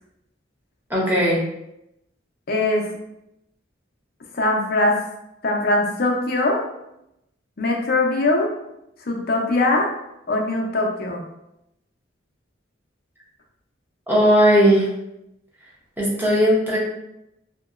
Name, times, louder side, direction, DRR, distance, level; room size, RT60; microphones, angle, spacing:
voice 1, 0.9-1.4 14.1-14.9 16.0-16.8, equal, 10° right, -5 dB, 0.8 m, -17 dB
voice 2, 2.5-2.9 4.3-5.0 5.4-6.6 7.6-8.5 9.0-9.9 10.3-11.2, left 2 dB, 50° left, 0 dB, 0.6 m, -21 dB
2.8 x 2.8 x 2.4 m, 0.84 s
head